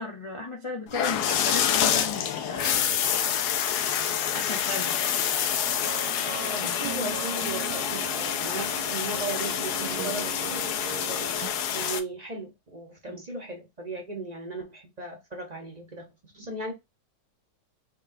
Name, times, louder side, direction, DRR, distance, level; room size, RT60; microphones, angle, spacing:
voice 1, 0.0-3.3 4.2-5.0 6.6-6.8 13.1-13.3, left 2 dB, 50° left, 0.3 m, -36 dB
sound 1, 0.9-12.0, left 9 dB, 70° left, 1.1 m, -27 dB
sound 2, 5.7-11.5, right 10 dB, 70° right, 0.9 m, -40 dB
voice 2, 6.4-16.7, right 2 dB, 30° right, 0.9 m, -37 dB
4.4 x 3.1 x 2.6 m
omnidirectional pair, 1.9 m